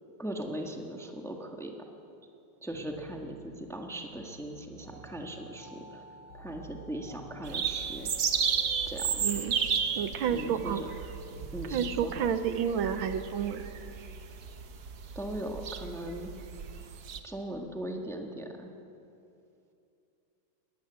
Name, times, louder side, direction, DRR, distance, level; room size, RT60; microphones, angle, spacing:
voice 1, 0.2-1.7 2.6-6.0 6.4-8.1 8.9-9.2 10.3-10.9 11.5-12.3 15.1-16.3 17.2-18.7, right 1 dB, ahead, 3 dB, 1.3 m, -39 dB
sound 1, 2.7-12.0, right 3 dB, 75° left, 4.7 m, -50 dB
sound 2, 7.4-17.2, right 6 dB, 55° right, 1.5 m, -33 dB
voice 2, 9.2-9.6 10.0-10.8 11.7-13.6, right 8 dB, 80° right, 10 dB, 1.7 m, -30 dB
21.0 x 17.0 x 8.1 m, 2.7 s
omnidirectional pair, 2.2 m